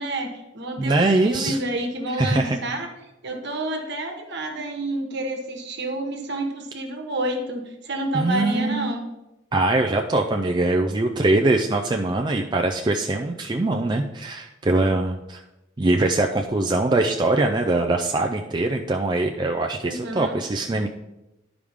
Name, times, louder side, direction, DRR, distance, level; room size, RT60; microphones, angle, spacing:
voice 1, 0.0-2.9 3.2-9.0 19.8-20.4, right 1 dB, 55° right, 4 dB, 1.3 m, -29 dB
voice 2, 0.8-1.6 2.2-2.6 8.1-8.9 9.5-15.4 15.8-20.9, right 2 dB, 20° right, 3 dB, 0.4 m, -22 dB
11.0 x 4.9 x 3.5 m, 0.96 s
head